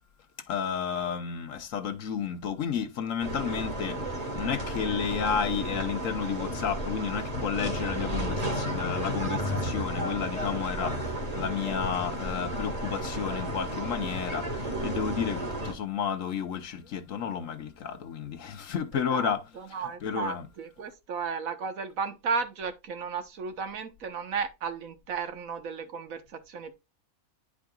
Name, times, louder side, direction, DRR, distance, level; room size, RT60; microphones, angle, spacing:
voice 1, 0.5-19.4 19.7-20.4, left 7 dB, 70° left, 1.3 m, -32 dB
sound 1, 3.2-15.7, right 1 dB, 30° right, 1.8 m, -33 dB
voice 2, 19.1-26.7, right 5 dB, 85° right, 1.5 m, -34 dB
10.5 x 4.8 x 2.3 m
omnidirectional pair, 1.4 m